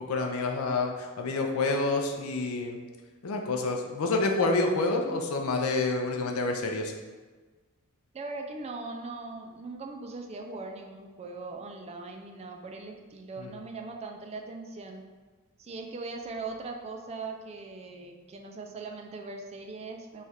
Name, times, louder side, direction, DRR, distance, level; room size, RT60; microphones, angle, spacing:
voice 1, 0.0-2.8 3.2-6.9 13.4-13.5, left 3 dB, 85° left, 3 dB, 0.5 m, -28 dB
voice 2, 8.1-15.1 15.6-20.2, right 3 dB, 30° right, 3 dB, 0.3 m, -40 dB
3.2 x 2.4 x 4.1 m, 1.3 s
head